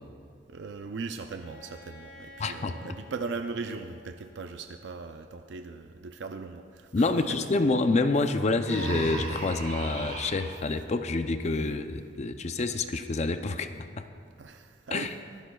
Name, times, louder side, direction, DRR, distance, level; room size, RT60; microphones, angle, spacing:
voice 1, 0.5-7.4 14.4-15.1, right 4 dB, 75° right, 6 dB, 0.5 m, -39 dB
Bowed string instrument, 1.3-5.1, left 3 dB, 85° left, 2.1 m, -52 dB
voice 2, 2.4-2.8 6.9-14.1 14.9-15.1, left 3 dB, 40° left, 9 dB, 0.5 m, -27 dB
Human voice, 8.6-10.5, right 2 dB, 55° right, 3.8 m, -35 dB
23.5 x 12.5 x 2.3 m, 2.3 s
head